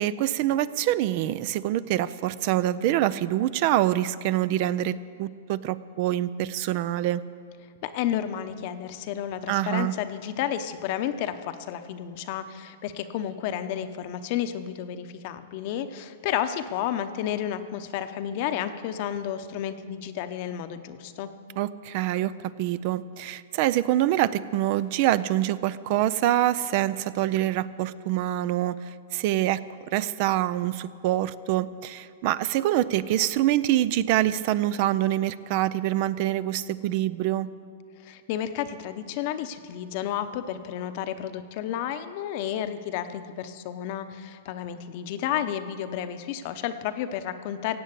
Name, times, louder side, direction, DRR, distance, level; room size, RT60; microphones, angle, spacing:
voice 1, 0.0-7.2 9.5-9.9 21.6-29.6 29.9-37.5, right 13 dB, 45° right, 17 dB, 0.4 m, -25 dB
voice 2, 7.8-21.3 38.0-47.8, left 10 dB, 50° left, 10 dB, 0.8 m, -31 dB
16.5 x 7.6 x 8.3 m, 2.2 s
hypercardioid pair, 135°, 0 cm